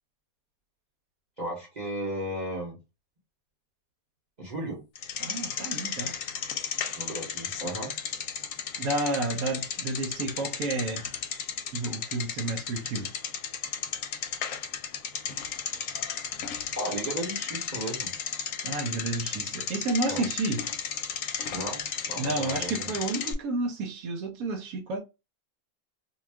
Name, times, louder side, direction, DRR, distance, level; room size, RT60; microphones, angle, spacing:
voice 1, 1.4-2.8 4.4-4.8 7.0-7.9 16.7-18.1 20.1-20.2 21.5-22.9, right 1 dB, 35° right, 0.9 m, -35 dB
Bicycle, 5.0-23.3, left 7 dB, 75° left, 0.9 m, -34 dB
voice 2, 5.2-6.2 8.8-11.1 11.7-13.1 18.6-20.6 22.2-25.0, right 2 dB, 80° right, 1.1 m, -31 dB
2.5 x 2.3 x 3.3 m
omnidirectional pair, 1.5 m